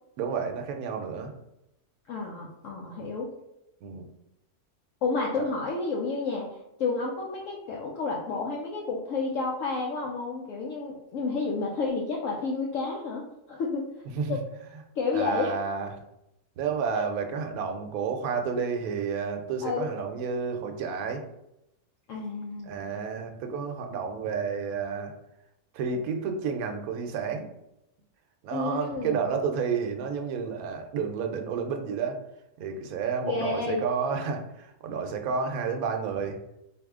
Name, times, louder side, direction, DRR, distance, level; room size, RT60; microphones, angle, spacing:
voice 1, 0.2-1.3 3.8-4.1 14.1-14.4 15.1-16.0 16.6-21.2 22.6-25.1 25.7-27.5 28.4-32.2 32.6-36.4, right 5 dB, 75° right, 4 dB, 1.0 m, -31 dB
voice 2, 2.1-3.3 5.0-13.9 14.3-14.4 15.0-15.5 16.9-17.0 19.6-19.9 22.1-22.9 28.5-29.3 33.2-33.8, left 4 dB, 65° left, -2 dB, 0.9 m, -30 dB
4.1 x 2.7 x 3.6 m, 0.85 s
omnidirectional pair, 1.6 m